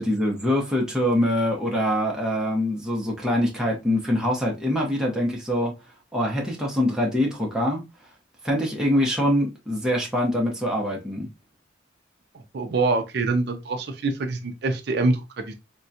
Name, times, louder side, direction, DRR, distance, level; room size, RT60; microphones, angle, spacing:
voice 1, 0.0-5.7 6.1-7.8 8.4-11.3, equal, 5° right, 0.7 m, -24 dB
voice 2, 12.3-15.5, right 3 dB, 60° right, 0.4 m, -25 dB
3.5 x 2.2 x 2.6 m
head